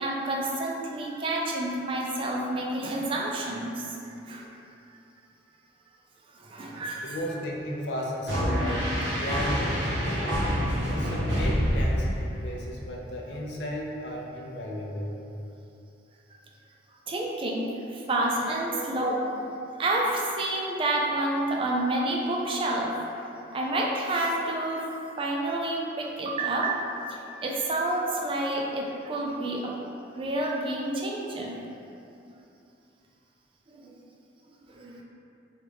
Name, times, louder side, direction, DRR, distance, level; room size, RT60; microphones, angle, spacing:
voice 1, 0.0-4.5 6.4-7.2 17.1-19.4 19.8-23.1 23.5-24.9 25.2-29.8 30.1-31.5 33.7-33.9 34.7-35.0, right 1 dB, 30° right, -1 dB, 0.3 m, -29 dB
voice 2, 7.0-15.2 18.7-19.1 27.8-28.0, equal, 70° left, -2 dB, 0.5 m, -35 dB
sound 1, 8.3-12.6, equal, 80° right, 0.9 m, -27 dB
2.9 x 2.3 x 3.3 m, 2.8 s
head